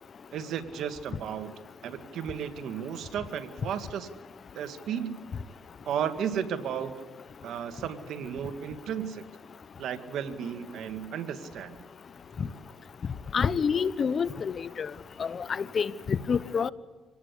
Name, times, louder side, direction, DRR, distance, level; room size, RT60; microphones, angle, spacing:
voice 1, 0.3-1.5 1.8-4.1 4.5-5.2 5.9-6.9 7.4-9.2 9.8-11.8, right 8 dB, 75° right, 2.0 m, -34 dB
voice 2, 13.3-14.9 15.2-16.7, left 6 dB, 45° left, 1.0 m, -28 dB
26.5 x 19.0 x 8.4 m
cardioid pair, 90°, 0 cm